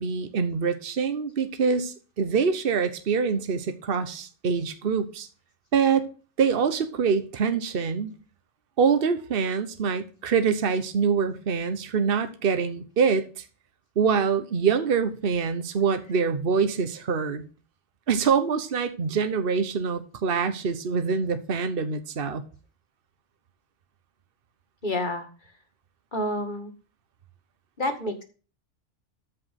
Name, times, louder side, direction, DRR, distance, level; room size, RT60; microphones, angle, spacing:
voice 1, 0.0-5.3 5.7-6.1 6.4-8.1 8.8-13.4 14.0-17.4 18.1-22.4, right 6 dB, 55° right, 1.2 m, -25 dB
voice 2, 24.8-25.3 26.1-26.7 27.8-28.2, left 1 dB, 40° left, 2.1 m, -28 dB
14.0 x 5.0 x 5.9 m
omnidirectional pair, 1.2 m